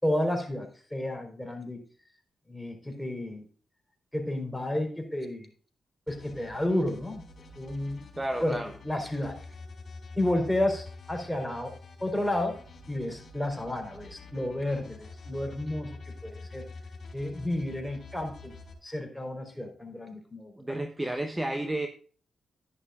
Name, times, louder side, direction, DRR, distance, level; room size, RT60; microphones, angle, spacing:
voice 1, 0.0-1.8 2.5-3.4 4.1-5.5 6.1-7.2 7.6-8.0 8.4-9.4 10.1-11.7 12.0-12.6 12.9-16.7 17.1-18.5 18.8-20.8, left 1 dB, 5° left, 4.3 m, -31 dB
sound 1, 6.1-18.7, left 3 dB, 60° left, 3.5 m, -47 dB
voice 2, 8.2-8.7 20.6-21.9, right 1 dB, 20° right, 1.1 m, -31 dB
11.0 x 11.0 x 2.5 m
supercardioid pair, 45°, 0 cm